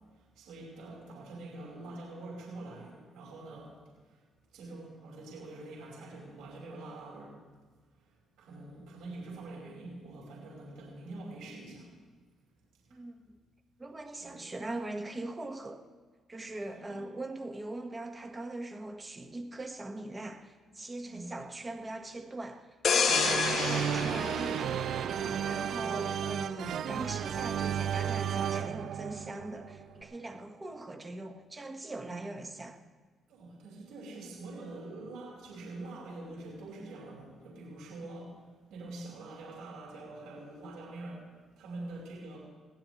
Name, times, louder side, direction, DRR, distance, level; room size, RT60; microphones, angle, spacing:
voice 1, 0.1-3.7 4.0-4.2 4.5-7.4 7.9-11.9 12.8-13.0 14.2-14.4 16.7-17.0 21.0-21.3 25.4-26.0 31.9-32.3 33.3-41.3 41.6-42.4, right 2 dB, 90° right, -5 dB, 5.5 m, -45 dB
voice 2, 12.9-13.4 13.8-15.8 16.3-32.8, right 2 dB, 25° right, 5 dB, 1.5 m, -41 dB
sound 1, 22.8-25.5 26.0-26.2, left 6 dB, 50° left, 1.3 m, -29 dB
sound 2, 23.1-30.0, right 9 dB, 70° right, 0.4 m, -33 dB
22.0 x 16.5 x 3.2 m, 1.4 s
cardioid pair, 90°, 0 cm